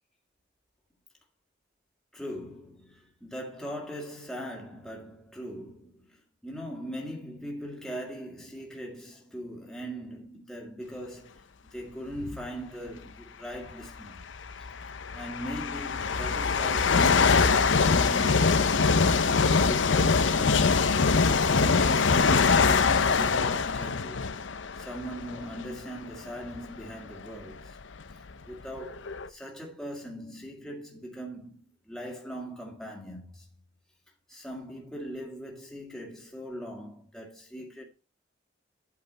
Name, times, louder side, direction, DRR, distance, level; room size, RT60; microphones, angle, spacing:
voice 1, 2.1-11.4 11.7-14.3 14.6-19.1 19.5-20.9 21.2-24.3 24.8-27.8 28.4-33.5 34.3-37.8, equal, ahead, 2.0 m, -40 dB
sound 1, 12.2-12.4 13.5-13.6 14.4-25.8 26.4-26.6 27.4-27.5 27.7-29.3, left 5 dB, 80° left, 0.7 m, -23 dB
8.3 x 7.7 x 4.2 m
head